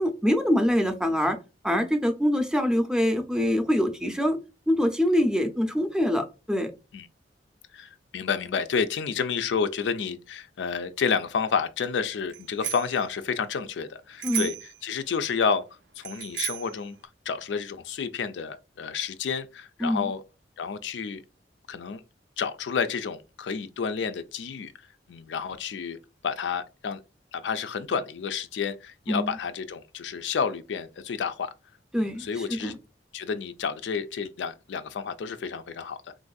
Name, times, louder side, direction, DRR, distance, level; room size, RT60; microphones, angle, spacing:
voice 1, 0.0-1.4 1.6-4.4 4.7-6.7 14.2-14.5 19.8-20.1 29.1-29.4 31.9-32.8, equal, 5° right, 0.5 m, -24 dB
voice 2, 7.7-14.5 14.8-15.7 16.0-17.0 17.3-20.2 20.6-21.2 21.7-22.0 22.4-24.7 25.1-26.0 26.2-27.0 27.3-31.5 32.0-32.7 33.1-36.2, left 6 dB, 80° left, 0.4 m, -30 dB
Bicycle bell, 12.3-13.0 14.2-14.8 16.0-16.8, right 11 dB, 75° right, 0.5 m, -33 dB
3.7 x 2.6 x 2.3 m
head